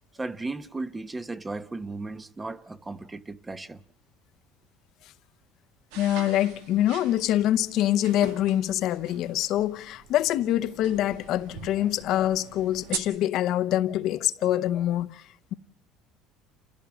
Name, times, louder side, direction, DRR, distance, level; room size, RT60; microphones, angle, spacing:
voice 1, 0.1-3.8 11.8-11.9, right 3 dB, 15° right, 0.9 m, -36 dB
sound 1, 5.9-13.0, right 8 dB, 90° right, 1.6 m, -42 dB
voice 2, 6.0-15.5, left 12 dB, 60° left, 0.8 m, -25 dB
29.0 x 16.0 x 6.1 m
cardioid pair, 115°, 0 cm